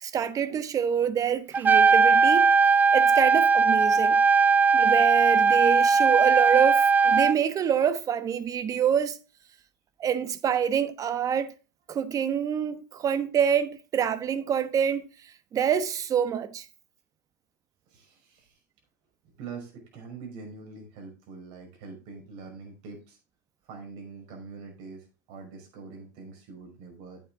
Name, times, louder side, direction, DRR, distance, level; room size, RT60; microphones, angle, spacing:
voice 1, 0.0-2.5 2.9-4.2 4.7-9.2 10.0-11.5 11.9-15.1 15.5-16.7, right 8 dB, 30° right, 1.1 m, -26 dB
Trumpet, 1.5-7.3, right 5 dB, 15° right, 0.3 m, -19 dB
voice 2, 17.9-18.6 19.2-23.2 23.6-27.2, right 4 dB, 60° right, 5.4 m, -44 dB
8.9 x 8.8 x 3.7 m
hypercardioid pair, 105°, 11 cm